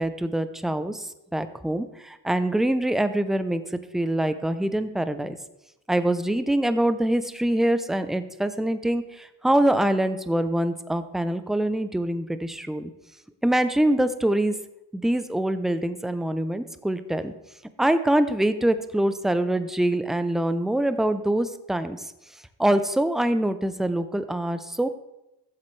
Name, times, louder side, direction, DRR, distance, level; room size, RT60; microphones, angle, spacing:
voice 1, 0.0-3.6 3.9-5.4 5.9-12.9 13.4-14.5 14.9-17.3 17.8-22.0 22.6-24.9, right 1 dB, ahead, 11 dB, 0.6 m, -24 dB
12.5 x 7.3 x 3.3 m, 0.92 s
cardioid pair, 65°, 47 cm